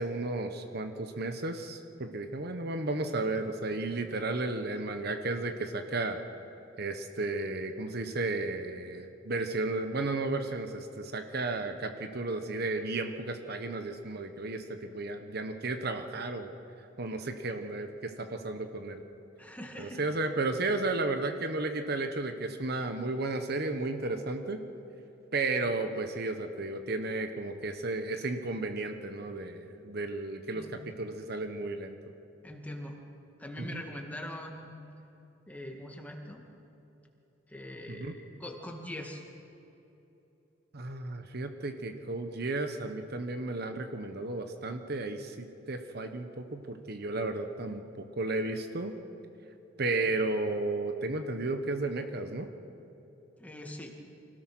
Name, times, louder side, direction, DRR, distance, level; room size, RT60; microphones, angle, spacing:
voice 1, 0.0-6.2 6.8-16.5 17.0-19.0 19.8-24.6 25.3-31.9 33.6-33.8 37.9-38.2 40.7-48.9 49.8-52.5, right 2 dB, 55° right, 6 dB, 1.1 m, -33 dB
voice 2, 19.4-20.0 30.5-30.8 32.4-33.0 33.4-34.8 35.5-36.4 37.5-39.2 53.4-54.0, left 1 dB, 10° left, 1 dB, 2.1 m, -42 dB
25.5 x 17.5 x 6.2 m, 2.9 s
head